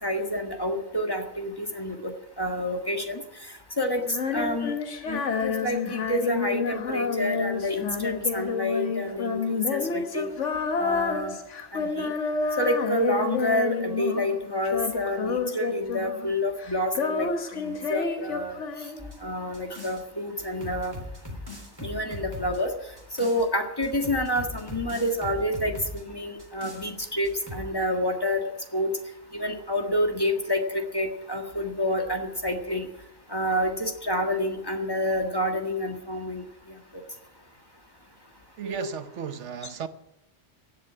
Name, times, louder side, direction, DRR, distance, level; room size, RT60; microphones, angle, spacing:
voice 1, 0.0-3.2 3.8-4.0 4.3-4.7 5.1-10.3 10.8-11.4 11.7-12.1 12.6-18.6 19.2-21.0 21.8-22.7 23.2-28.9 29.3-32.9 33.3-36.4 38.6-38.9, left 1 dB, 20° left, 1.8 m, -28 dB
Female singing, 4.0-14.4 14.6-16.3 16.6-19.3, left 5 dB, 80° left, 1.5 m, -29 dB
sound 1, 19.0-20.0 20.4-23.5 23.8-26.0 26.4-26.9 27.2-27.7, left 2 dB, 20° right, 3.4 m, -39 dB
voice 2, 38.6-39.9, right 7 dB, 75° right, 1.1 m, -35 dB
16.5 x 7.9 x 9.7 m
omnidirectional pair, 1.2 m